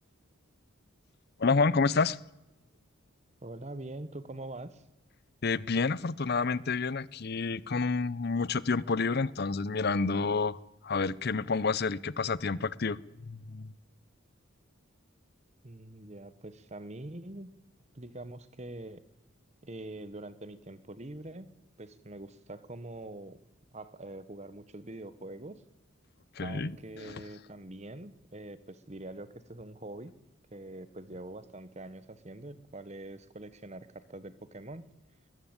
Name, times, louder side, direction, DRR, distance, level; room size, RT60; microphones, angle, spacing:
voice 1, 1.4-2.2 5.4-13.7 26.4-26.7 27.0-27.2, left 4 dB, 50° left, 20 dB, 0.6 m, -29 dB
voice 2, 3.4-4.8 15.6-17.5 17.9-19.0 19.6-21.5 21.8-23.4 23.7-25.6 26.4-30.1 30.5-34.8, right 2 dB, 30° right, 15 dB, 1.2 m, -44 dB
21.5 x 14.0 x 8.9 m, 0.98 s
head